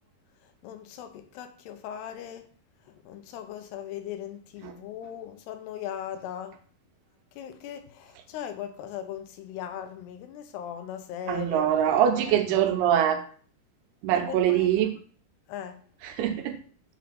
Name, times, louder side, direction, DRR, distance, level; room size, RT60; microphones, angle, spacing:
voice 1, 0.6-2.5 2.9-6.6 7.3-12.7 14.1-14.9 15.5-15.8, left 9 dB, 80° left, 2.8 m, -39 dB
voice 2, 11.3-13.2 14.0-14.9 16.0-16.6, right 10 dB, 80° right, 2.6 m, -23 dB
7.4 x 4.1 x 5.7 m
omnidirectional pair, 4.9 m